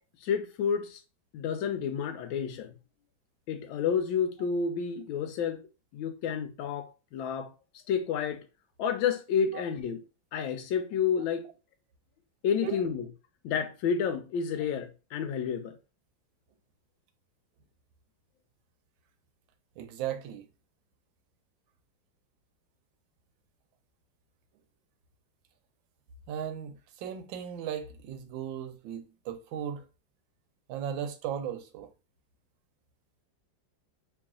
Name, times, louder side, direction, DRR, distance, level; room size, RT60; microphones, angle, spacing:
voice 1, 0.2-1.0 1.3-2.7 3.5-5.6 5.9-7.5 7.9-8.4 8.8-10.0 10.3-11.5 12.4-13.0 13.4-15.8, left 7 dB, 85° left, 1.4 m, -30 dB
voice 2, 19.8-20.5 26.3-29.8 30.7-31.9, right 9 dB, 80° right, 1.4 m, -36 dB
3.1 x 2.9 x 3.6 m
omnidirectional pair, 2.1 m